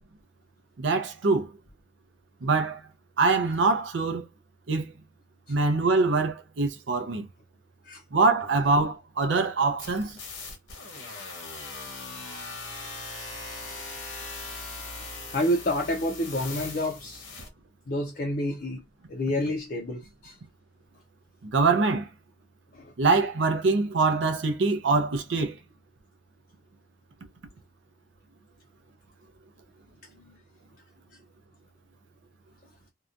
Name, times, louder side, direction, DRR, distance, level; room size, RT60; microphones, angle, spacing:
voice 1, 0.8-1.5 2.4-2.8 3.2-4.2 4.7-4.9 5.5-7.3 8.1-10.2 21.4-22.1 23.0-25.6, right 3 dB, 70° right, 0.5 m, -24 dB
sound 1, 9.8-17.5, left 3 dB, 75° left, 1.0 m, -40 dB
voice 2, 15.3-17.2 17.9-18.8 19.1-20.4 22.7-22.9, left 1 dB, 45° left, 0.5 m, -28 dB
2.7 x 2.2 x 2.4 m
head